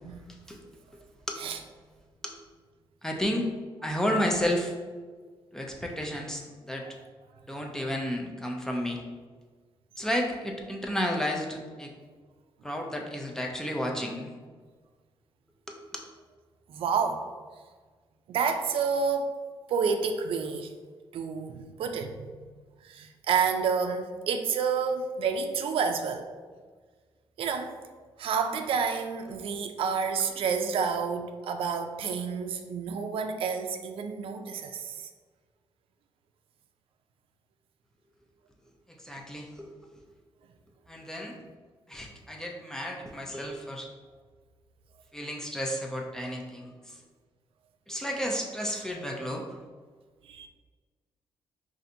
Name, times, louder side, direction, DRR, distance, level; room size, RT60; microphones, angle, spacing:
voice 1, 3.0-3.5 3.8-4.7 5.5-6.9 7.5-9.0 10.0-11.9 12.6-14.3 15.7-15.8 38.9-39.7 40.0-40.1 40.9-41.4 41.9-43.9 45.1-47.0 47.9-49.5, equal, 5° left, 0 dB, 0.4 m, -32 dB
voice 2, 16.7-17.3 18.3-19.3 19.7-20.7 21.1-22.4 22.8-26.3 27.4-27.8 28.2-35.1 50.2-50.5, right 5 dB, 85° right, 6 dB, 0.4 m, -29 dB
5.5 x 2.5 x 2.6 m, 1.5 s
wide cardioid pair, 150°, 9 cm